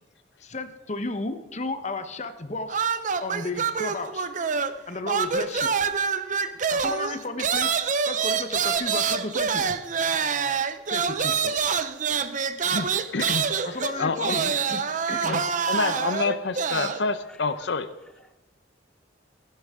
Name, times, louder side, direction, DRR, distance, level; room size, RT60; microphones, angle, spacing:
voice 1, 0.4-2.8 3.2-4.3 4.9-5.7 6.7-9.7 10.9-11.8 13.7-14.8 15.1-16.1, left 2 dB, 40° left, 1.0 m, -34 dB
sound 1, 2.7-4.8 5.1-17.0, right 6 dB, 45° right, 0.6 m, -26 dB
voice 2, 9.6-11.4 17.3-17.4, left 1 dB, 5° left, 0.4 m, -57 dB
voice 3, 12.6-14.4 15.3-17.9, left 4 dB, 70° left, 0.7 m, -28 dB
15.0 x 11.5 x 3.7 m
head